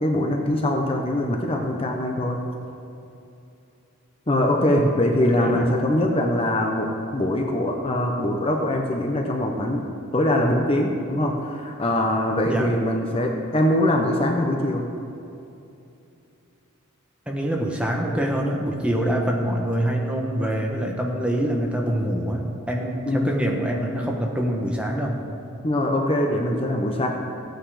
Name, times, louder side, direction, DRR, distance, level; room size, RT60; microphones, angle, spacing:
voice 1, 0.0-2.4 4.3-14.9 23.1-23.3 25.6-27.1, left 1 dB, 25° left, 1 dB, 0.9 m, -23 dB
voice 2, 5.2-5.7 12.4-12.7 17.3-25.2, right 1 dB, 5° right, 0 dB, 1.1 m, -25 dB
15.0 x 9.2 x 4.9 m, 2.7 s
head